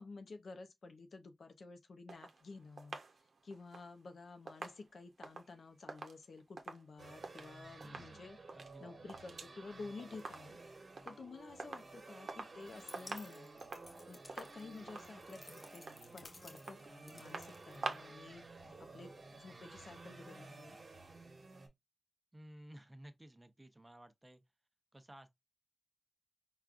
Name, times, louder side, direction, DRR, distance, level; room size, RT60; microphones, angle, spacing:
voice 1, 0.0-3.0 3.4-8.4 8.8-10.6 11.0-13.5 14.1-18.5 18.8-20.8, left 3 dB, 85° left, 0.6 m, -52 dB
sound 1, 2.1-7.5 7.8-8.1 8.4-9.6 9.8-10.7 11.0-11.2 11.6-12.6 12.9-18.2 18.5-18.6, right 4 dB, 85° right, 0.6 m, -48 dB
sound 2, 7.0-21.7, right 3 dB, 55° right, 1.0 m, -54 dB
voice 2, 7.8-8.3 8.5-9.1 18.6-18.9 19.5-19.6 22.3-24.4 24.9-25.4, right 1 dB, 15° right, 0.6 m, -56 dB
sound 3, 12.6-18.3, left 2 dB, 40° left, 0.5 m, -58 dB
4.7 x 2.3 x 2.4 m
wide cardioid pair, 110°, 0 cm